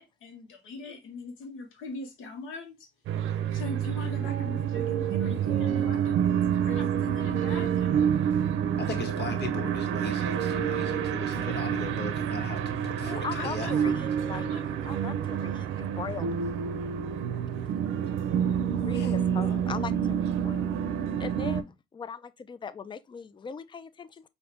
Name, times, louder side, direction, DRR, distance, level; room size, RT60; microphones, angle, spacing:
voice 1, 0.0-2.9 3.5-6.2 6.5-8.0 13.3-15.3, left 3 dB, 85° left, 1.2 m, -41 dB
sound 1, 3.1-21.6, right 8 dB, 80° right, 0.5 m, -28 dB
voice 2, 8.8-13.7 18.9-19.1, left 3 dB, 55° left, 1.4 m, -38 dB
voice 3, 13.0-14.5 14.9-16.3 18.8-20.7 21.2-24.3, left 6 dB, 25° left, 0.4 m, -39 dB
5.0 x 2.7 x 3.3 m
cardioid pair, 90°, 20 cm